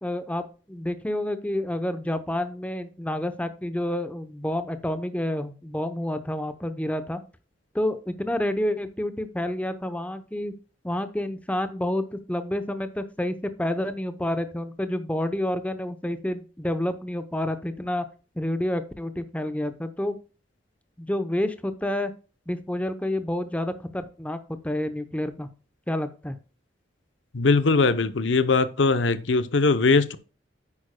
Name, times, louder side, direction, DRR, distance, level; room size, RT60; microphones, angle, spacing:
voice 1, 0.0-7.2 7.7-10.5 10.8-18.1 18.4-20.2 21.0-22.1 22.5-25.5 25.9-26.4, left 1 dB, 10° left, 0.8 m, -29 dB
voice 2, 27.3-30.2, left 3 dB, 80° left, 0.8 m, -21 dB
9.9 x 8.6 x 2.2 m
head